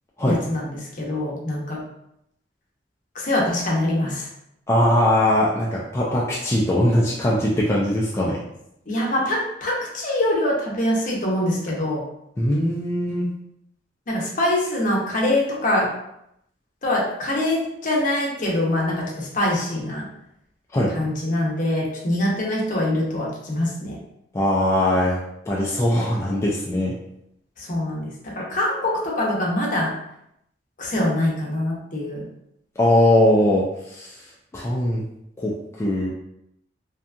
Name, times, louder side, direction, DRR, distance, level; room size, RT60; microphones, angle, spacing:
voice 1, 0.3-1.8 3.1-4.3 8.9-12.0 14.1-15.9 16.8-20.0 20.9-24.0 27.6-29.9 30.8-32.3, left 1 dB, 45° left, -3 dB, 0.7 m, -24 dB
voice 2, 4.7-8.4 12.4-13.3 20.7-20.9 24.3-25.2 25.5-27.0 32.8-34.2 34.5-35.0 35.4-36.1, left 1 dB, 15° left, -5 dB, 0.3 m, -20 dB
2.7 x 2.2 x 2.5 m, 0.79 s
head